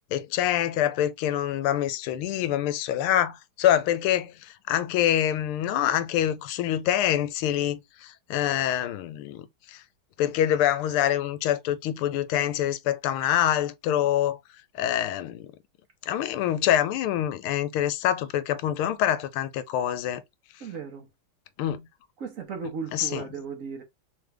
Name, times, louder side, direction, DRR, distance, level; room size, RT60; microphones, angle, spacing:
voice 1, 0.1-9.8 10.2-14.4 14.7-15.5 16.1-20.2 21.6-21.8 22.6-23.3, left 11 dB, 80° left, 1.5 m, -26 dB
voice 2, 20.6-21.1 22.2-23.8, right 5 dB, 60° right, 0.9 m, -36 dB
3.7 x 3.4 x 3.2 m
omnidirectional pair, 2.4 m